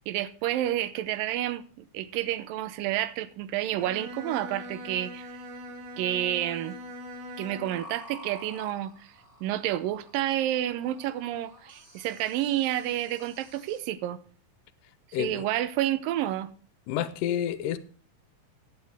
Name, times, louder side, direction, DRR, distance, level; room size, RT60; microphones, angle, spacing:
voice 1, 0.1-1.6 1.9-5.3 6.0-6.8 7.4-9.1 9.4-14.2 15.2-16.5, right 13 dB, 90° right, 2.5 m, -29 dB
Bowed string instrument, 3.7-7.9, equal, 70° right, 2.4 m, -41 dB
sound 1, 7.6-13.8, equal, 20° right, 1.6 m, -50 dB
voice 2, 15.1-15.5 16.9-17.8, left 11 dB, 85° left, 2.4 m, -29 dB
15.5 x 9.5 x 3.5 m
omnidirectional pair, 3.9 m